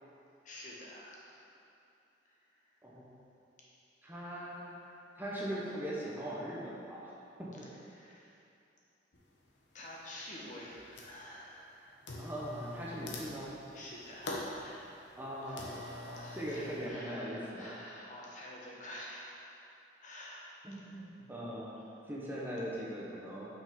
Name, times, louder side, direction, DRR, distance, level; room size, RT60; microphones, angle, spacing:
voice 1, 0.4-1.5 2.2-2.8 3.6-4.3 7.8-8.4 9.7-12.1 13.7-19.5 20.0-20.7, left 1 dB, 45° left, -4 dB, 1.2 m, -49 dB
voice 2, 4.0-4.7 5.2-7.1 7.4-7.7 12.2-13.6 15.2-15.6 16.3-17.7 20.6-23.5, equal, 10° right, -6 dB, 1.0 m, -40 dB
sound 1, 9.1-9.2 9.8-10.3 10.6-11.3 12.0-16.9, left 2 dB, 70° left, 1.0 m, -44 dB
6.0 x 5.7 x 5.2 m, 2.7 s
head